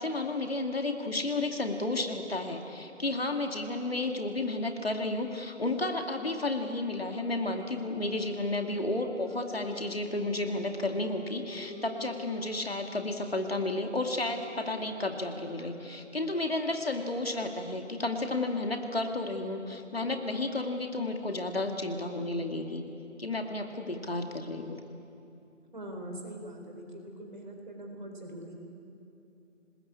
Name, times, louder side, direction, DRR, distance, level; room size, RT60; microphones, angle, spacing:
voice 1, 0.0-22.8 23.2-24.8, left 2 dB, 50° left, 4 dB, 2.3 m, -32 dB
sound 1, 6.9-12.5 13.1-18.7, equal, 20° right, 2.8 m, -50 dB
voice 2, 25.7-28.5, right 1 dB, 40° right, 2 dB, 4.4 m, -42 dB
27.5 x 20.5 x 8.5 m, 2.7 s
figure-of-eight pair, 180°, 37 cm